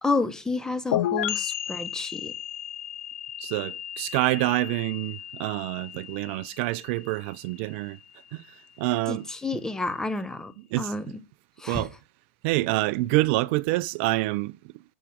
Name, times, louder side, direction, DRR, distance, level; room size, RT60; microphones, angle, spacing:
voice 1, 0.0-2.3 9.1-9.2 9.4-10.5 10.8-11.0 11.6-11.8, left 3 dB, 10° left, 0.9 m, -29 dB
sound 1, 0.9-8.5, left 12 dB, 70° left, 0.5 m, -34 dB
voice 2, 3.4-8.0 8.3-8.5 8.8-9.6 10.6-11.1 11.7-12.0 12.4-14.6, right 19 dB, 55° right, 0.3 m, -27 dB
7.0 x 6.6 x 4.9 m
hypercardioid pair, 105°, 7 cm